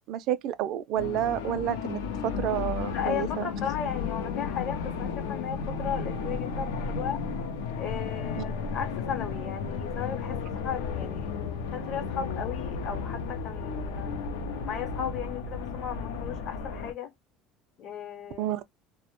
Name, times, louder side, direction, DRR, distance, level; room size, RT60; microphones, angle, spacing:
voice 1, 0.1-3.5 18.4-18.6, right 12 dB, 60° right, 0.3 m, -30 dB
sound 1, 1.0-16.9, left 5 dB, 90° left, 0.5 m, -33 dB
voice 2, 2.9-7.2 7.8-11.3 11.7-14.1 14.6-17.1 17.8-18.5, left 8 dB, 50° left, 0.8 m, -35 dB
2.1 x 2.1 x 2.9 m
supercardioid pair, 105°, 0 cm